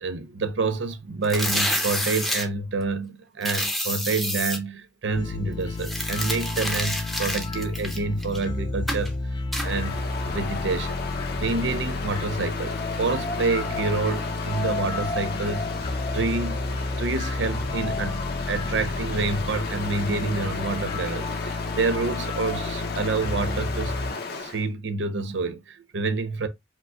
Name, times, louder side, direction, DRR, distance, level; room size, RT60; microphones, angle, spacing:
voice 1, 0.0-9.2 9.6-11.0 11.4-15.7 16.1-26.5, right 3 dB, 75° right, 0.6 m, -28 dB
sound 1, 1.2-2.5 3.4-4.6 5.8-8.4 8.9-9.1 9.5-9.7, equal, ahead, 0.8 m, -28 dB
sound 2, 5.1-24.1, left 3 dB, 25° left, 0.3 m, -31 dB
Stream, 9.6-24.7, left 3 dB, 60° left, 0.9 m, -35 dB
5.0 x 2.2 x 3.7 m
head